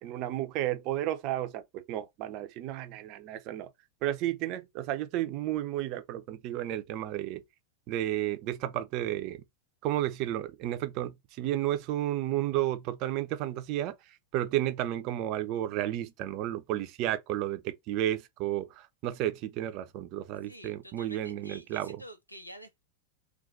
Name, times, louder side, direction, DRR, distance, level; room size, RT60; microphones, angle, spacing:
voice 1, 0.0-3.7 4.0-7.4 7.9-9.4 9.8-22.0, right 13 dB, 40° right, 0.7 m, -32 dB
voice 2, 20.4-22.8, equal, 90° left, 0.9 m, -49 dB
4.0 x 2.6 x 4.0 m
figure-of-eight pair, 90°, 0 cm